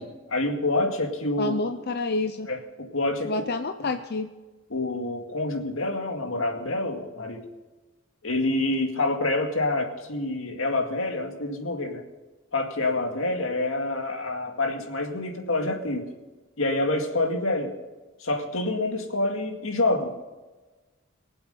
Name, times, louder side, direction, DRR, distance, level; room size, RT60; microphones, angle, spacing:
voice 1, 0.0-1.8 2.5-3.4 3.8-3.9 4.7-7.4 8.2-12.0 12.5-16.1 16.6-17.7 18.2-20.3, left 2 dB, 85° left, 4 dB, 2.1 m, -27 dB
voice 2, 1.4-2.5 3.3-4.3, left 3 dB, 50° left, 7 dB, 0.7 m, -28 dB
23.5 x 7.9 x 5.2 m, 1.2 s
head